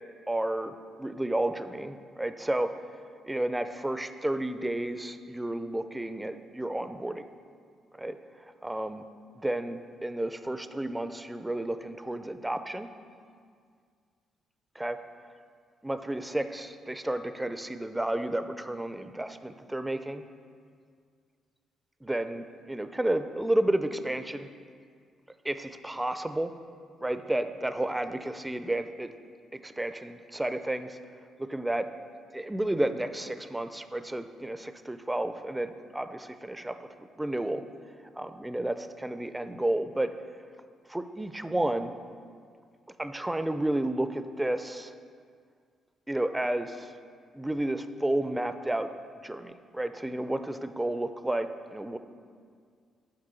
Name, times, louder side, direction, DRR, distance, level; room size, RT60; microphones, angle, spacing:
voice 1, 0.3-2.7 3.3-7.2 8.0-8.2 8.6-9.0 9.4-12.9 14.8-15.0 15.8-20.2 22.0-24.5 25.5-25.6 25.8-26.5 27.0-29.1 29.5-31.0 31.4-31.9 32.3-36.8 37.2-37.6 38.1-40.1 40.9-41.9 43.0-44.9 46.1-46.9 47.3-48.9 49.2-52.0, right 1 dB, 10° right, 10 dB, 0.4 m, -31 dB
6.8 x 4.7 x 6.7 m, 2.1 s
cardioid pair, 90°, 0 cm